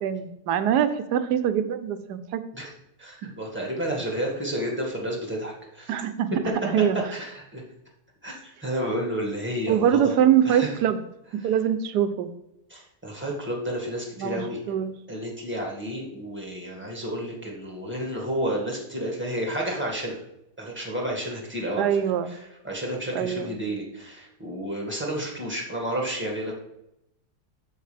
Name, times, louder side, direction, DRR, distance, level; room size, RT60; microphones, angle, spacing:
voice 1, 0.0-2.4 3.2-3.3 5.9-6.3 6.6-7.0 9.7-11.0 11.3-12.3 14.2-14.9 21.8-22.3 23.1-23.6, right 9 dB, 85° right, 11 dB, 1.3 m, -23 dB
voice 2, 3.0-5.9 7.1-7.6 8.2-10.2 10.4-10.7 12.7-14.6 15.1-20.2 20.6-21.9 22.6-26.6, equal, 5° right, -2 dB, 1.7 m, -31 dB
13.0 x 5.3 x 3.4 m, 0.85 s
omnidirectional pair, 1.7 m